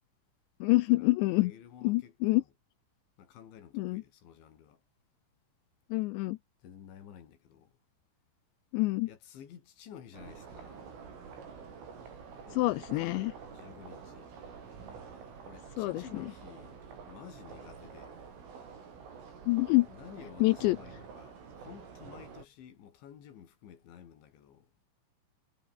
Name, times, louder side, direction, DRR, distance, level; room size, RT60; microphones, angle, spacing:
voice 1, 0.6-1.5 1.8-2.4 3.7-4.0 5.9-6.4 8.7-9.1 12.5-13.3 15.8-16.3 19.5-19.9 20.4-20.8, left 21 dB, 85° left, 2.6 m, -27 dB
voice 2, 1.4-2.5 3.2-4.8 6.6-7.7 9.1-10.9 12.4-14.3 15.4-16.8 17.1-18.2 19.8-24.7, left 9 dB, 65° left, 5.7 m, -52 dB
sound 1, 10.1-22.5, right 6 dB, 80° right, 8.9 m, -48 dB
omnidirectional pair, 5.7 m